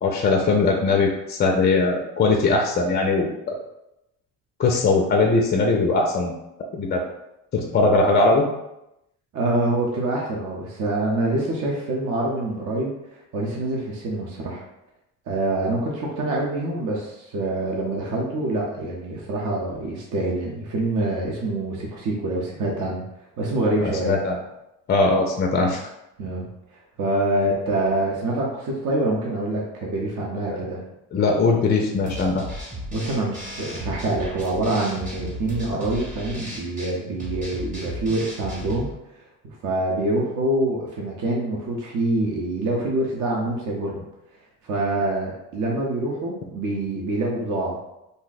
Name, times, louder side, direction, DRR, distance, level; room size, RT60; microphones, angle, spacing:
voice 1, 0.0-3.6 4.6-6.3 6.7-7.0 7.5-8.4 23.8-24.4 24.9-25.9 30.5-30.7 31.1-32.4, left 3 dB, 30° left, 1 dB, 0.4 m, -20 dB
voice 2, 9.3-14.6 15.3-23.0 23.4-24.1 26.2-26.5 26.7-30.8 32.9-38.9 39.4-44.0 44.6-47.8, right 2 dB, 55° right, -3 dB, 0.7 m, -25 dB
sound 1, 32.1-38.9, equal, 20° right, 1.0 m, -35 dB
2.6 x 2.1 x 3.9 m, 0.88 s
cardioid pair, 100°, 37 cm